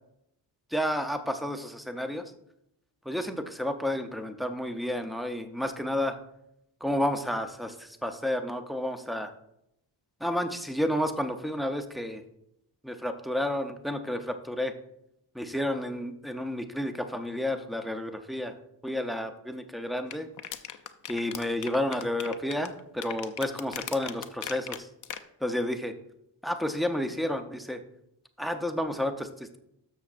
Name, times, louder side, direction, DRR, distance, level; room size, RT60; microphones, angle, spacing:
voice 1, 0.7-2.3 3.0-6.2 6.8-9.3 10.2-12.2 12.8-14.7 15.3-18.5 18.8-20.3 21.1-24.9 25.4-25.9 26.4-27.8 28.4-29.6, left 1 dB, ahead, 7 dB, 0.6 m, -31 dB
sound 1, 20.1-25.2, left 9 dB, 50° left, 0.6 m, -38 dB
13.0 x 6.3 x 2.5 m, 0.79 s
cardioid pair, 115°, 42 cm